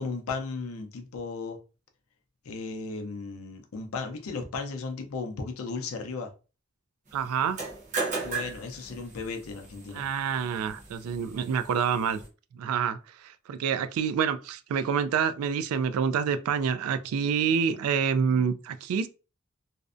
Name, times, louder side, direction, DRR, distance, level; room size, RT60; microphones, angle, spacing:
voice 1, 0.0-1.6 2.5-6.3 8.2-10.0, left 4 dB, 80° left, 0.5 m, -35 dB
voice 2, 7.1-7.6 9.9-12.2 12.5-13.0 13.2-19.1, right 7 dB, 90° right, 0.3 m, -27 dB
sound 1, 7.4-12.3, right 4 dB, 35° right, 0.8 m, -37 dB
2.5 x 2.1 x 2.4 m
head